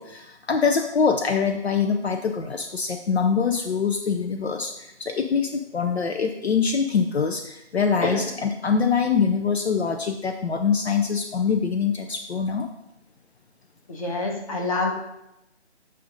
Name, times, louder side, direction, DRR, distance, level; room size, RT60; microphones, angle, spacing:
voice 1, 0.0-12.7, left 6 dB, 65° left, 5 dB, 0.6 m, -24 dB
voice 2, 13.9-14.9, left 2 dB, 30° left, 0 dB, 1.0 m, -26 dB
7.6 x 2.6 x 5.1 m, 0.87 s
figure-of-eight pair, 155°, 34 cm